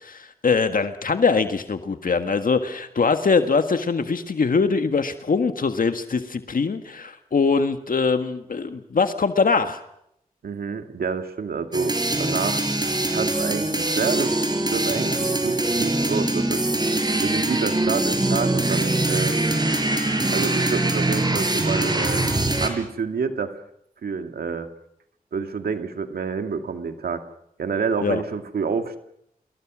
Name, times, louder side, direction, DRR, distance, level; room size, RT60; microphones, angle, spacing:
voice 1, 0.0-9.8 28.0-28.2, left 4 dB, 65° left, 8 dB, 1.7 m, -22 dB
voice 2, 10.4-12.6 13.1-14.3 14.7-16.6 17.2-19.3 20.3-22.3 22.6-23.6 24.0-24.7 25.3-27.2 27.6-29.0, right 5 dB, 90° right, 7 dB, 2.2 m, -28 dB
sound 1, 11.7-22.7, right 2 dB, 25° right, 5.5 m, -23 dB
26.5 x 22.0 x 6.2 m, 0.75 s
cardioid pair, 55°, 15 cm